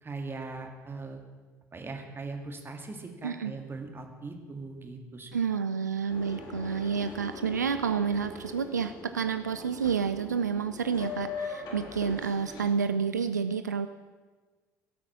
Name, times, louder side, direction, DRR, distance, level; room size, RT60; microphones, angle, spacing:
voice 1, 0.0-1.2 1.7-5.4, right 3 dB, 25° right, 4 dB, 2.0 m, -40 dB
voice 2, 5.3-13.9, right 6 dB, 80° right, 10 dB, 0.4 m, -29 dB
Boat Water vehicle, 6.1-12.7, left 4 dB, 50° left, 2.9 m, -41 dB
17.0 x 8.6 x 6.0 m, 1.4 s
figure-of-eight pair, 55°, 9 cm